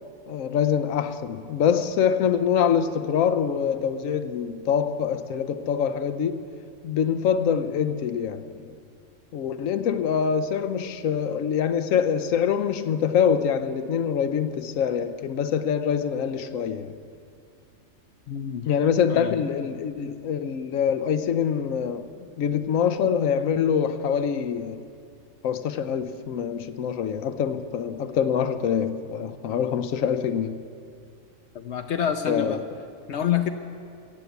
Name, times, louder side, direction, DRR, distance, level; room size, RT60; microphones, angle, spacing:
voice 1, 0.3-6.4 6.8-8.7 9.3-16.9 18.7-22.1 22.4-24.8 25.4-30.6 32.3-32.6, left 7 dB, 85° left, 1.1 m, -25 dB
voice 2, 18.3-18.7 19.1-19.4 31.5-32.6 33.1-33.5, left 9 dB, 65° left, 0.8 m, -27 dB
15.0 x 8.1 x 8.1 m
omnidirectional pair, 1.3 m